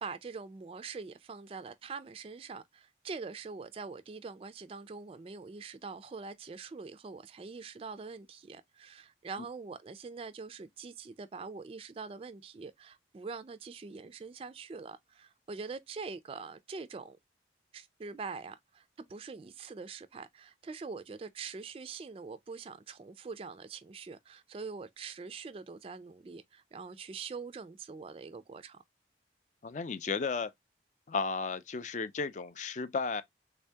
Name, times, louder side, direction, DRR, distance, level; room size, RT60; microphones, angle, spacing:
voice 1, 0.0-17.2 17.7-28.8, right 4 dB, 30° right, 0.3 m, -44 dB
voice 2, 29.6-30.5 31.1-33.2, left 4 dB, 45° left, 0.4 m, -34 dB
3.5 x 2.7 x 3.3 m
head